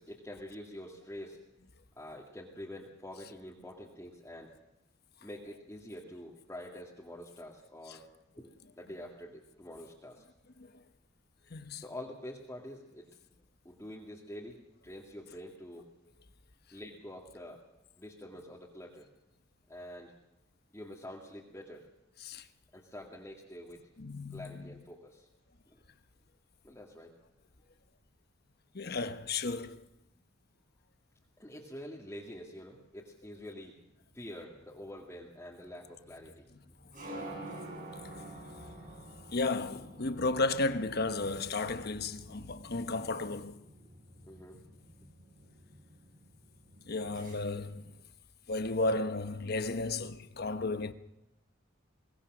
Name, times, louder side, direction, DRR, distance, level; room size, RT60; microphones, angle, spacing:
voice 1, 0.0-1.4 1.9-4.5 5.2-8.1 8.4-8.5 8.8-10.2 11.8-13.1 13.6-15.9 16.7-17.6 18.0-19.1 19.7-20.2 20.7-21.9 22.7-23.9 24.3-25.3 25.7-25.8 26.6-27.2 31.4-33.8 34.1-36.5 44.3-44.8, left 1 dB, 15° left, 2.2 m, -46 dB
voice 2, 11.5-11.8 22.2-22.5 24.0-24.7 28.7-29.8 38.4-38.5 39.3-43.6 46.9-47.9 48.5-50.9, left 3 dB, 55° left, 1.1 m, -33 dB
sound 1, 33.9-48.0, right 1 dB, 45° right, 7.4 m, -50 dB
23.0 x 19.0 x 6.2 m
head